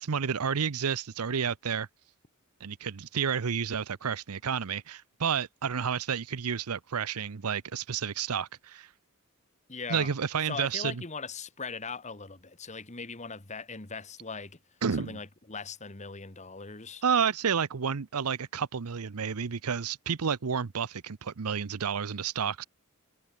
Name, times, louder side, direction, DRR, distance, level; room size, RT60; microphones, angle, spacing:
voice 1, 0.0-1.9 2.6-8.9 9.9-10.9 14.8-15.1 17.0-22.7, right 7 dB, 90° right, 0.7 m, -30 dB
voice 2, 9.7-10.1 10.4-14.6 14.9-17.0, left 4 dB, 30° left, 1.7 m, -40 dB
head